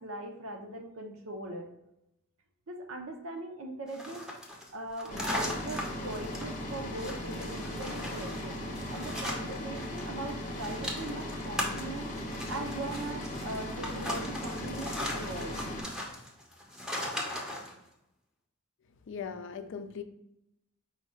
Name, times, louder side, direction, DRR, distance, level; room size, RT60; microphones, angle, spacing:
voice 1, 0.0-1.7 2.7-4.3 4.7-12.1 12.5-15.6, right 2 dB, 75° right, 2 dB, 0.8 m, -40 dB
sound 1, 3.9-10.0 10.3-17.7, left 1 dB, 5° right, 0.6 m, -39 dB
sound 2, 5.1-15.8, left 1 dB, 40° left, 0.8 m, -38 dB
voice 2, 19.1-20.0, left 6 dB, 60° left, 9 dB, 0.4 m, -39 dB
4.8 x 2.3 x 4.3 m, 0.83 s
head